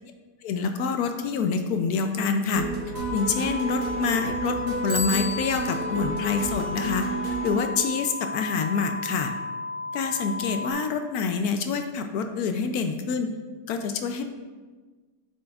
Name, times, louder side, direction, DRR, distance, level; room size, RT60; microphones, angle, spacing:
voice 1, 0.4-2.7 3.1-7.1 7.4-9.3 9.9-13.3 13.7-14.2, left 5 dB, 70° left, 6 dB, 1.0 m, -26 dB
sound 1, 2.5-7.6, right 4 dB, 55° right, 1.3 m, -32 dB
sound 2, 2.9-10.7, left 3 dB, 25° left, 1.2 m, -34 dB
Bicycle bell, 4.9-5.9, left 2 dB, 35° right, 1.1 m, -32 dB
8.4 x 7.6 x 2.4 m, 1.4 s
omnidirectional pair, 1.8 m